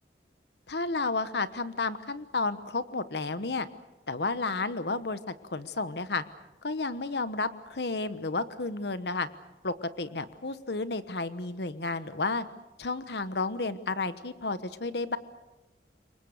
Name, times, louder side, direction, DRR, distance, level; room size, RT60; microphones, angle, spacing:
voice 1, 0.7-3.7 4.1-6.2 6.6-9.3 9.6-12.4 12.8-15.2, left 3 dB, 70° left, 13 dB, 1.1 m, -32 dB
27.5 x 23.5 x 6.6 m, 1.0 s
head